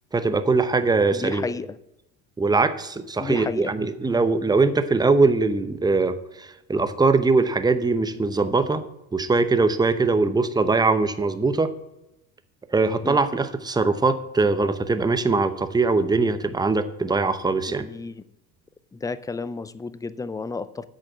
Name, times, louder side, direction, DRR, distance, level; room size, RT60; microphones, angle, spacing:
voice 1, 0.1-1.4 2.4-8.8 9.1-11.7 12.7-17.9, right 3 dB, 10° right, 11 dB, 0.8 m, -21 dB
voice 2, 1.1-1.7 3.2-3.7 13.0-13.2 17.7-18.1 18.9-20.8, left 4 dB, 10° left, 16 dB, 0.4 m, -31 dB
8.4 x 6.5 x 7.4 m, 0.89 s
hypercardioid pair, 80°, 40 cm